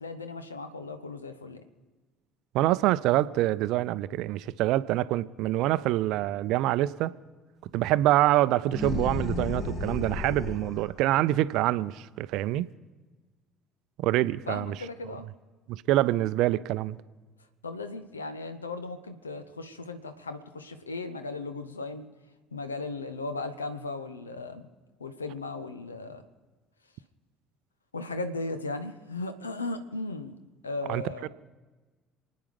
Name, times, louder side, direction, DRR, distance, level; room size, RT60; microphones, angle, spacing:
voice 1, 0.0-1.6 14.5-15.3 17.6-22.1 22.5-24.6 25.0-26.2 27.9-30.4 30.6-31.3, left 3 dB, 80° left, 10 dB, 1.0 m, -36 dB
voice 2, 2.5-7.1 7.7-12.7 14.0-14.8 15.7-17.0 30.9-31.3, right 15 dB, 55° right, 16 dB, 0.5 m, -25 dB
sound 1, 8.7-10.9, left 3 dB, 40° left, 2.0 m, -33 dB
28.0 x 9.6 x 5.2 m, 1.3 s
figure-of-eight pair, 55°, 0 cm